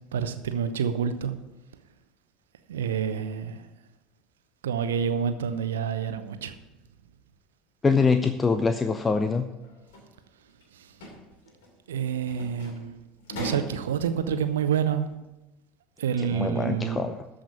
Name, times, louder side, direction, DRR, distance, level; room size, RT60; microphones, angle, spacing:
voice 1, 0.1-1.3 2.7-3.7 4.6-6.5 11.9-12.9 13.4-15.1 16.0-17.1, right 7 dB, 70° right, 10 dB, 0.8 m, -28 dB
voice 2, 7.8-9.4 16.2-17.2, left 4 dB, 20° left, 9 dB, 0.6 m, -24 dB
sound 1, 9.6-10.0 10.5-10.6 10.9-11.2 11.5-11.7 12.3-12.8 13.2-13.8, equal, 65° left, 3.0 m, -37 dB
13.5 x 5.1 x 7.2 m, 1.0 s
figure-of-eight pair, 70°, 0 cm